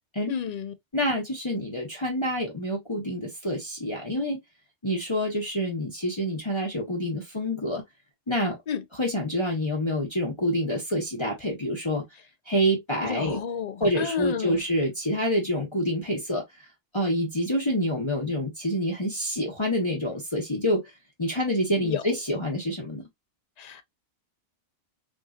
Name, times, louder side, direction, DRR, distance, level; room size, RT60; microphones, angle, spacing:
voice 1, 0.3-0.7 8.7-8.8 13.0-14.6 21.8-22.0 23.6-23.8, left 7 dB, 45° left, 0.6 m, -31 dB
voice 2, 0.9-4.4 4.8-7.8 8.3-8.6 9.0-12.0 12.5-13.4 13.8-16.4 16.9-20.9 21.2-23.0, equal, 25° left, 1.0 m, -27 dB
3.6 x 2.9 x 2.4 m
omnidirectional pair, 1.2 m